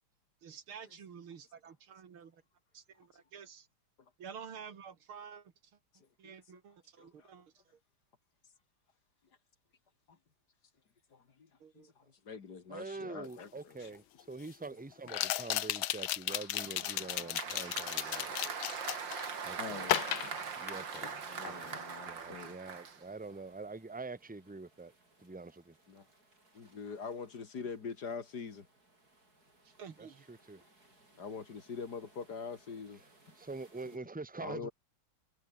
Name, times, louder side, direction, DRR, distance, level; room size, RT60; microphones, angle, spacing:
voice 1, 0.4-2.4 2.7-3.7 4.2-5.5 6.2-7.5 11.6-11.9 16.6-17.3 17.5-18.6 29.8-30.2, right 7 dB, 90° right, 3.0 m, -51 dB
voice 2, 7.0-7.3 11.1-11.5 11.7-11.9 12.3-13.9 19.6-20.0 21.3-22.5 25.9-26.0 26.5-28.7 31.2-33.0 34.4-34.7, left 5 dB, 50° left, 2.5 m, -44 dB
voice 3, 12.7-18.4 19.4-19.9 20.6-21.1 21.4-21.8 22.1-24.9 25.2-25.7 30.0-30.6 33.3-34.7, right 3 dB, 5° right, 1.2 m, -45 dB
sound 1, 13.4-13.5 15.1-19.3 19.8-21.2 21.4-21.8, left 13 dB, 75° left, 1.7 m, -35 dB
Applause, 16.3-23.4, right 6 dB, 60° right, 3.0 m, -42 dB
sound 2, 17.6-34.0, right 2 dB, 45° right, 7.4 m, -65 dB
omnidirectional pair, 2.3 m